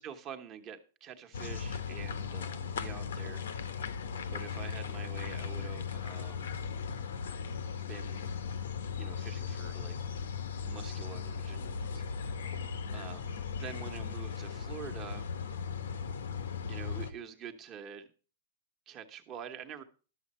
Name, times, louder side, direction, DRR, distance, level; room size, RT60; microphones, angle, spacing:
voice 1, 0.0-3.7 4.3-6.5 7.8-8.3 9.0-10.0 10.6-13.3 13.6-15.3 16.7-18.1 18.9-19.8, right 8 dB, 25° right, 7 dB, 1.1 m, -46 dB
sound 1, 1.3-17.1, left 6 dB, 90° left, 1.2 m, -37 dB
12.0 x 7.2 x 4.3 m, 0.36 s
supercardioid pair, 165°, 0 cm